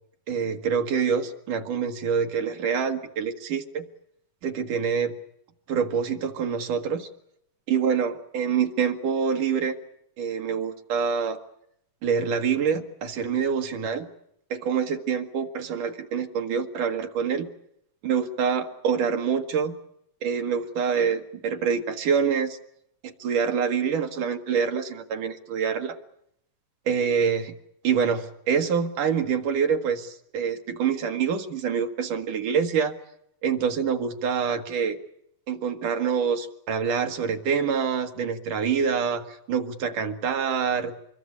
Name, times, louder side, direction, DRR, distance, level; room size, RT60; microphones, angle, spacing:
voice 1, 0.3-3.8 4.4-5.1 5.7-7.1 7.7-9.8 10.2-11.4 12.0-14.1 14.5-17.5 18.0-19.7 20.2-22.6 23.0-26.0 26.9-27.5 27.8-32.9 33.4-35.0 35.5-40.9, right 6 dB, 70° right, 5 dB, 3.1 m, -26 dB
25.5 x 22.0 x 8.6 m, 0.74 s
omnidirectional pair, 3.8 m